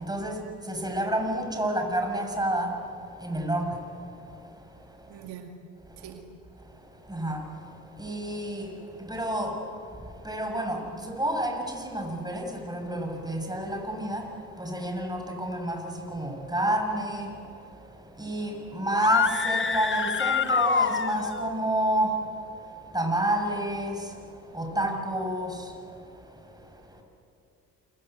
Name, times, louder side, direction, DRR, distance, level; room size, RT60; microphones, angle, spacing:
voice 1, 0.0-5.3 5.8-6.2 6.6-27.0, right 1 dB, 10° right, 3 dB, 6.7 m, -31 dB
voice 2, 5.1-5.6 6.0-6.2 24.8-25.0, right 10 dB, 75° right, 3 dB, 2.3 m, -43 dB
sound 1, 18.9-21.5, left 5 dB, 30° left, 1.2 m, -26 dB
27.5 x 24.0 x 8.1 m, 2.5 s
hypercardioid pair, 60°, 42 cm